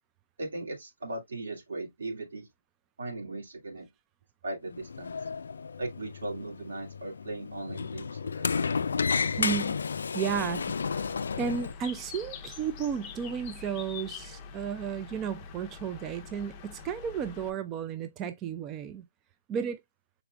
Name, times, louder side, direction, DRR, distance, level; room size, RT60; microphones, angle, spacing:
voice 1, 0.4-2.5 3.0-3.9 4.4-5.2 5.8-8.6, right 2 dB, 75° right, 2.1 m, -38 dB
Sliding door, 4.7-11.7, left 5 dB, 75° left, 0.3 m, -32 dB
voice 2, 9.3-9.8 10.1-10.7 11.4-19.0 19.5-19.8, right 7 dB, 20° right, 0.4 m, -33 dB
Bird, 10.3-17.5, left 6 dB, 25° left, 0.7 m, -45 dB
5.8 x 4.0 x 2.2 m
hypercardioid pair, 150°, 0 cm